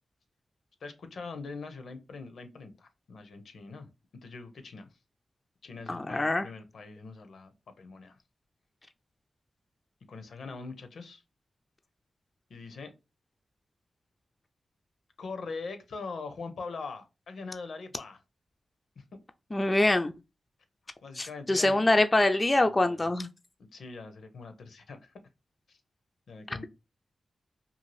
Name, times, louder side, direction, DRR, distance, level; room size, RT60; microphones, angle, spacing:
voice 1, 0.8-3.9 4.2-4.9 5.6-8.2 10.1-11.2 12.5-12.9 15.2-18.2 19.0-19.1 21.0-22.0 22.6-23.1 23.7-25.1 25.7-25.8 26.3-26.6, left 4 dB, 80° left, 0.5 m, -42 dB
voice 2, 5.9-6.5 19.5-20.1 21.2-23.3 26.5-26.6, left 2 dB, 30° left, 0.3 m, -25 dB
2.6 x 2.4 x 3.1 m
cardioid pair, 55°, 0 cm